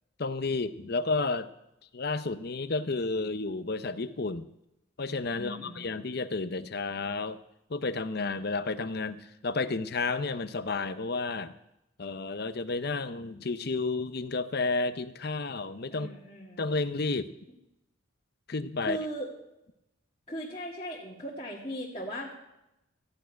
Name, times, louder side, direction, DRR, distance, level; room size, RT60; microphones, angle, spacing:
voice 1, 0.2-1.5 1.9-4.5 5.0-7.4 7.7-11.6 12.0-16.1 16.6-17.3 18.5-19.0, left 3 dB, 50° left, 12 dB, 0.7 m, -31 dB
voice 2, 5.3-5.9 15.9-16.6 18.8-19.3 20.3-22.3, equal, 25° left, -6 dB, 1.9 m, -38 dB
14.5 x 6.4 x 9.3 m, 0.88 s
head